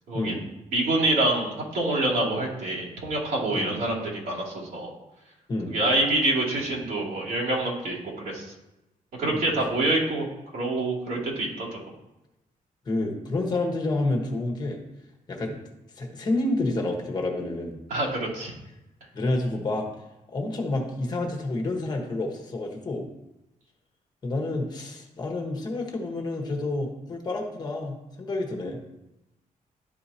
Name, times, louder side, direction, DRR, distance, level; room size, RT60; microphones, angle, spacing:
voice 1, 0.1-0.4 0.7-4.9 5.7-8.5 9.2-10.3 10.5-11.8 17.9-18.5, right 2 dB, 80° right, -6 dB, 2.6 m, -26 dB
voice 2, 12.9-14.8 15.3-15.6 16.0-17.8 19.1-19.9 20.3-23.1 24.2-28.8, left 2 dB, 30° left, 1 dB, 1.2 m, -29 dB
11.5 x 4.7 x 2.8 m, 0.95 s
wide cardioid pair, 165°, 15 cm